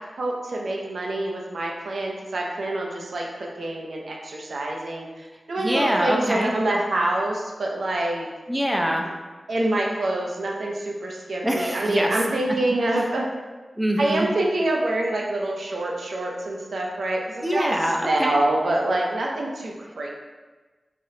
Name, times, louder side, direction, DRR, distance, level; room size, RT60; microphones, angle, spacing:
voice 1, 0.0-8.3 9.5-13.3 14.0-17.7 18.1-20.1, right 1 dB, 80° right, -1 dB, 0.5 m, -26 dB
voice 2, 5.6-6.5 8.5-9.1 11.4-12.1 12.9-13.0 13.8-14.3 17.4-18.4, equal, 5° right, 0 dB, 0.5 m, -24 dB
3.7 x 3.4 x 2.7 m, 1.3 s
wide cardioid pair, 70°, 0 cm